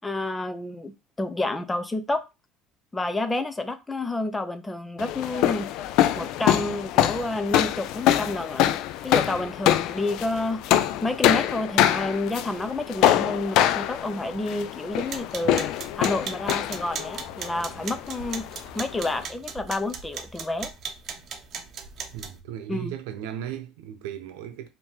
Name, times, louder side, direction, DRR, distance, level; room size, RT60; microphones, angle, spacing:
voice 1, 0.0-0.9 1.2-2.2 2.9-5.7 6.2-8.8 9.0-10.6 11.0-15.7 15.9-18.5 18.7-20.7 22.7-23.0, left 2 dB, 15° left, 0.5 m, -29 dB
sound 1, 5.0-19.2, left 12 dB, 65° left, 0.4 m, -25 dB
sound 2, 14.9-22.4, right 6 dB, 45° right, 0.9 m, -38 dB
voice 2, 22.1-24.7, right 10 dB, 85° right, 0.8 m, -36 dB
4.4 x 2.8 x 3.6 m
supercardioid pair, 110°, 0 cm